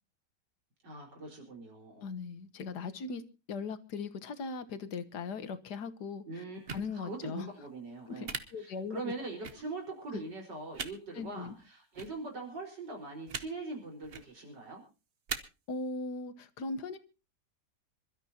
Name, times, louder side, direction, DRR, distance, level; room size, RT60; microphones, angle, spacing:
voice 1, 0.8-2.1 6.3-14.8, right 3 dB, 90° right, 5.2 m, -42 dB
voice 2, 2.0-3.2 3.5-6.2 6.7-7.5 8.1-9.0 10.1-10.2 11.1-11.5 15.7-17.0, left 4 dB, 70° left, 1.6 m, -39 dB
sound 1, 6.7-6.8 8.2-8.4 9.4-9.5 10.7-10.9 11.9-12.1 13.3-13.4 14.0-14.2 15.3-15.4, right 5 dB, 40° right, 1.1 m, -37 dB
26.5 x 13.0 x 2.8 m
omnidirectional pair, 1.8 m